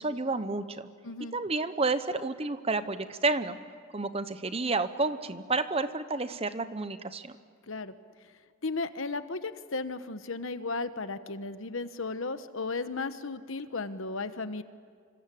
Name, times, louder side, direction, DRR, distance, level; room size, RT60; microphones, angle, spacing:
voice 1, 0.0-0.9 1.3-3.6 3.9-7.3, right 3 dB, 25° right, 11 dB, 0.9 m, -30 dB
voice 2, 1.0-1.3 7.7-7.9 8.6-14.6, left 3 dB, 65° left, 11 dB, 1.2 m, -35 dB
27.5 x 25.5 x 8.5 m, 2.1 s
head